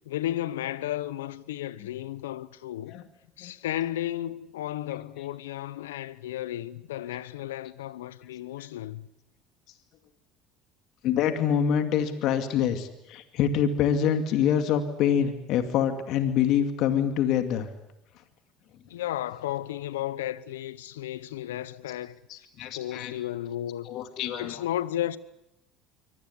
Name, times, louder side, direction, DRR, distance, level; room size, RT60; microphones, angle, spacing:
voice 1, 0.1-3.0 3.4-9.1 18.9-22.2 22.7-23.9 24.4-25.2, left 13 dB, 85° left, 0.9 m, -33 dB
voice 2, 11.0-17.7 22.3-23.1 23.8-24.7, left 8 dB, 60° left, 2.3 m, -26 dB
24.5 x 18.5 x 9.7 m
hypercardioid pair, 75°, 0 cm